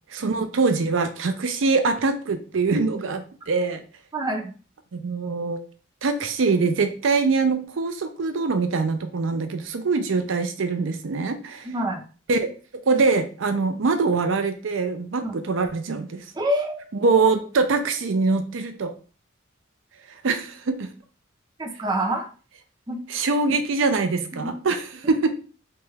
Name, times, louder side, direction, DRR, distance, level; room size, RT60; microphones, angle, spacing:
voice 1, 0.1-3.8 4.9-5.7 6.0-11.7 12.3-12.5 12.9-16.2 17.0-18.9 20.2-20.9 23.1-25.4, right 4 dB, 80° right, 7 dB, 0.5 m, -23 dB
voice 2, 4.1-4.5 11.6-12.0 15.2-15.4 16.3-16.8 21.6-22.3 22.9-23.0 24.3-24.5, right 1 dB, 20° right, 2 dB, 0.5 m, -26 dB
3.4 x 3.0 x 3.3 m, 0.38 s
head